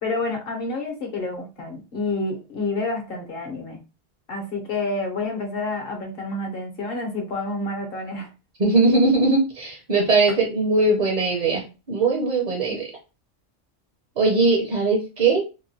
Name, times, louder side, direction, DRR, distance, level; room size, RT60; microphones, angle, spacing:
voice 1, 0.0-3.8 4.3-8.3, left 2 dB, 50° left, 2 dB, 1.0 m, -29 dB
voice 2, 8.6-12.9 14.2-15.4, right 3 dB, 45° right, 0 dB, 0.7 m, -20 dB
2.9 x 2.2 x 2.7 m, 0.30 s
omnidirectional pair, 1.3 m